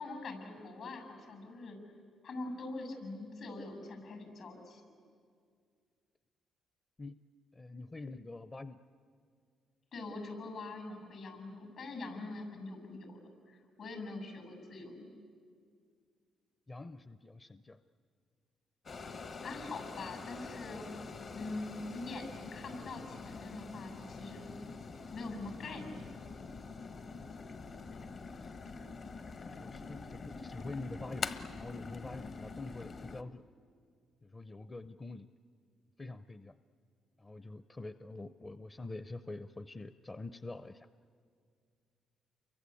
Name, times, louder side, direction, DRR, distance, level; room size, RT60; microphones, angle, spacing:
voice 1, 0.0-1.8 2.2-4.8 9.9-15.1 19.4-20.9 21.3-24.5 25.1-26.1, left 2 dB, 70° left, 6 dB, 7.4 m, -43 dB
voice 2, 7.5-8.8 16.7-17.8 28.0-28.5 29.6-31.2 31.5-33.4 34.2-35.3 36.0-36.5 37.2-40.9, left 2 dB, 25° left, 12 dB, 0.6 m, -46 dB
sound 1, 18.9-33.2, left 4 dB, 50° left, 1.3 m, -45 dB
29.5 x 23.5 x 8.5 m, 2.2 s
cardioid pair, 90°, 0 cm